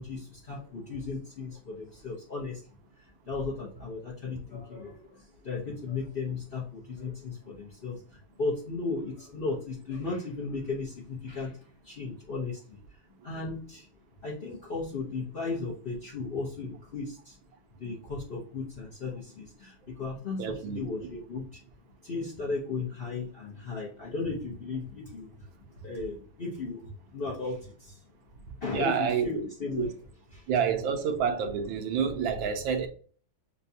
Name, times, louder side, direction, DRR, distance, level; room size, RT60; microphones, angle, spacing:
voice 1, 0.0-2.6 3.3-11.6 11.8-12.8 13.2-13.9 14.2-17.3 17.8-20.5 20.7-21.6 22.0-25.3 25.8-28.0 28.6-29.9 30.3-30.4, left 3 dB, 60° left, 0.6 m, -35 dB
voice 2, 20.4-20.8 28.7-29.4 29.8-29.9 30.5-32.9, right 7 dB, 75° right, 1.4 m, -28 dB
6.6 x 2.3 x 2.7 m
omnidirectional pair, 2.2 m